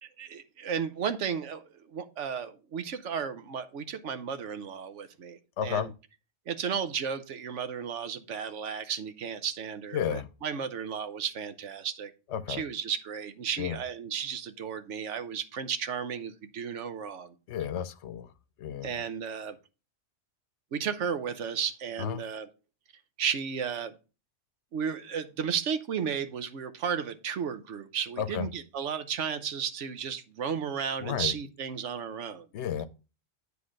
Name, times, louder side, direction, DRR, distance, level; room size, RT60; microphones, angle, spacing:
voice 1, 0.0-5.9 6.5-12.1 12.5-17.3 18.8-19.6 20.7-22.5 23.2-24.0 24.7-32.5, right 7 dB, 90° right, 1.2 m, -34 dB
voice 2, 5.6-5.9 9.9-10.3 12.3-12.6 13.6-13.8 17.5-18.3 18.6-18.9 22.0-22.2 28.2-28.5 31.0-31.4 32.5-32.9, left 9 dB, 75° left, 0.9 m, -32 dB
9.5 x 3.3 x 6.3 m
omnidirectional pair, 1.2 m